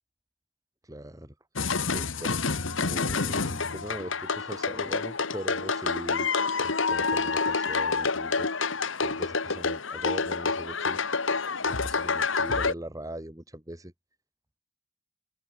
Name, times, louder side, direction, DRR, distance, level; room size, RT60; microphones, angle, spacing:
voice 1, 0.8-1.3 1.9-2.4 2.7-6.3 6.6-8.5 9.0-11.0 11.6-13.9, right 1 dB, 15° right, 2.0 m, -40 dB
sound 1, 1.6-12.7, left 4 dB, 70° left, 1.8 m, -28 dB
open air
head